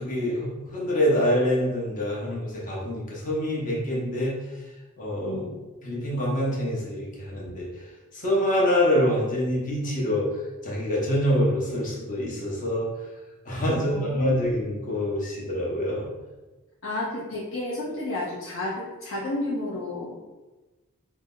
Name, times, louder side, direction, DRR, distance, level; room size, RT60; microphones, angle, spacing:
voice 1, 0.0-4.4 5.0-5.4 5.8-7.8 8.1-10.3 10.6-12.9 13.5-16.1, equal, 35° left, -5 dB, 0.9 m, -25 dB
voice 2, 5.2-5.6 13.7-14.4 16.8-20.2, left 2 dB, 60° left, -6 dB, 0.6 m, -31 dB
3.2 x 2.0 x 3.7 m, 1.2 s
head